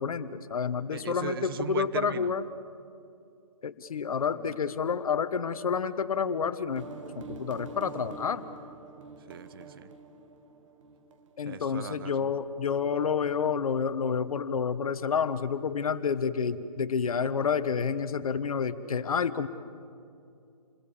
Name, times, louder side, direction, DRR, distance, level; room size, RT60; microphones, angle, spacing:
voice 1, 0.0-2.5 3.6-6.9 7.2-8.4 11.4-19.5, left 6 dB, 65° left, 12 dB, 1.3 m, -29 dB
voice 2, 0.9-2.3 4.3-4.6 9.3-9.9 11.5-12.3, right 8 dB, 35° right, 13 dB, 0.8 m, -38 dB
sound 1, 6.7-12.2, right 3 dB, 50° right, 1.8 m, -46 dB
29.0 x 21.5 x 7.1 m, 2.5 s
hypercardioid pair, 155°, 20 cm